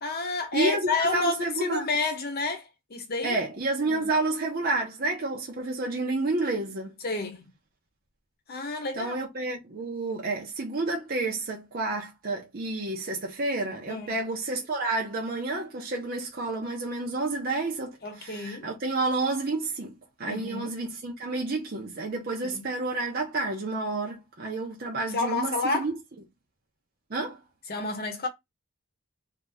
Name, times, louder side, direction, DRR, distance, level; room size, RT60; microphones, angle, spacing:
voice 1, 0.0-3.4 3.9-4.1 7.0-7.5 8.5-9.2 13.9-14.1 18.0-18.7 20.3-20.7 22.4-22.6 25.1-25.9 27.7-28.3, left 3 dB, 45° left, 0.9 m, -30 dB
voice 2, 0.5-1.9 3.2-6.9 9.0-19.9 20.2-26.0 27.1-27.4, right 2 dB, 45° right, 0.7 m, -30 dB
2.8 x 2.6 x 3.4 m
head